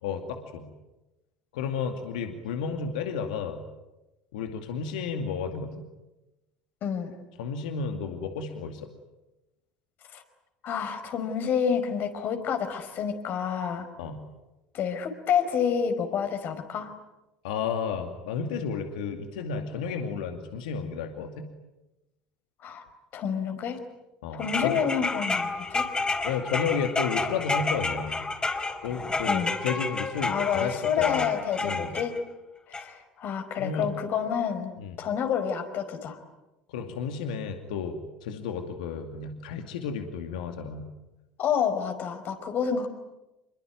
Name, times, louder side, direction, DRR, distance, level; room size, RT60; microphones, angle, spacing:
voice 1, 0.0-0.7 1.5-3.6 4.3-5.8 7.4-8.9 14.0-14.2 17.4-21.5 24.2-24.8 26.2-28.2 28.8-31.2 31.6-31.9 33.6-33.9 34.8-35.0 36.7-40.9, left 6 dB, 70° left, 6 dB, 2.5 m, -32 dB
voice 2, 6.8-7.2 10.1-10.2 10.6-13.9 14.7-16.9 22.6-22.8 23.1-23.8 24.3-25.9 29.3-29.5 30.3-32.2 32.7-34.7 35.0-36.2 41.4-42.9, left 7 dB, 50° left, 7 dB, 5.0 m, -28 dB
sound 1, 24.4-32.1 32.7-32.8, left 3 dB, 20° left, 4.7 m, -30 dB
27.5 x 23.0 x 9.5 m, 1.0 s
figure-of-eight pair, 65°, 4 cm